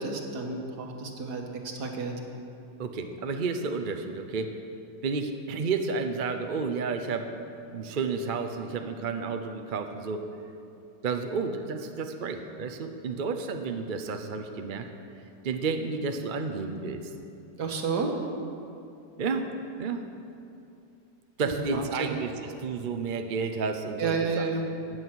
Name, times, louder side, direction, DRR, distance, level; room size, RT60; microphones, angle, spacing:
voice 1, 0.0-2.1 17.6-18.2 21.4-22.1 24.0-24.6, right 4 dB, 75° right, 2 dB, 1.9 m, -31 dB
voice 2, 2.8-4.5 5.0-7.3 7.7-10.2 11.0-14.9 15.4-17.1 19.2-19.5 19.8-20.0 21.4-24.4, right 4 dB, 50° right, 6 dB, 0.6 m, -31 dB
15.0 x 9.7 x 6.3 m, 2.7 s
omnidirectional pair, 1.8 m